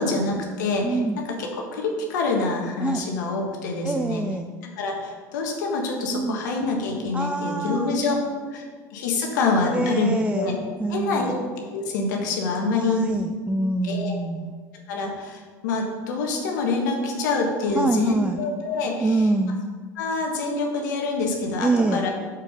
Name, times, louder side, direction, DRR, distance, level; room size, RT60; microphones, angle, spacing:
voice 1, 0.0-4.2 4.6-10.5 10.9-11.4 11.7-13.1 13.8-14.2 14.9-19.2 19.9-22.1, left 3 dB, 80° left, 0 dB, 1.5 m, -26 dB
voice 2, 0.8-1.2 2.8-3.0 3.8-4.5 6.1-6.4 7.1-8.0 9.7-10.5 10.8-11.4 12.6-14.5 17.7-18.4 19.0-19.6 21.6-22.0, right 2 dB, 10° right, 5 dB, 0.5 m, -25 dB
6.8 x 6.1 x 5.2 m, 1.5 s
hypercardioid pair, 80°, 10 cm